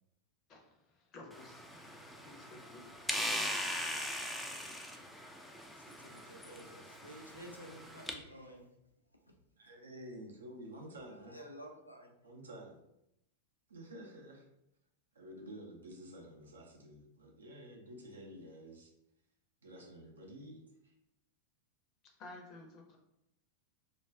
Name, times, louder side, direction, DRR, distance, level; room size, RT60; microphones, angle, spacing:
voice 1, 0.5-1.6 2.3-2.9 22.2-23.0, left 2 dB, 35° left, 1 dB, 0.6 m, -53 dB
sound 1, 1.3-8.1, equal, ahead, 0.3 m, -40 dB
voice 2, 1.9-2.2 5.7-8.7 11.1-12.2, equal, 90° left, 1 dB, 0.4 m, -52 dB
voice 3, 9.6-11.4 12.2-12.8 13.7-14.5 15.1-18.9 19.6-20.9, equal, 70° right, 0 dB, 0.5 m, -50 dB
2.3 x 2.2 x 3.3 m, 0.82 s
figure-of-eight pair, 90°, 0 cm